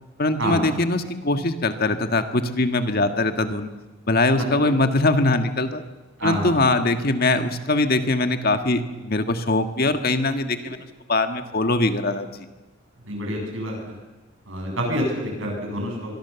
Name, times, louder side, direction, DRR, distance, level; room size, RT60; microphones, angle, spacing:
voice 1, 0.2-3.7 4.1-5.8 6.2-10.8 11.1-12.5, left 2 dB, 50° left, 8 dB, 1.7 m, -22 dB
voice 2, 6.2-6.6 13.1-13.8 14.5-16.2, equal, 70° right, 1 dB, 7.9 m, -27 dB
25.5 x 23.0 x 7.1 m, 1.1 s
head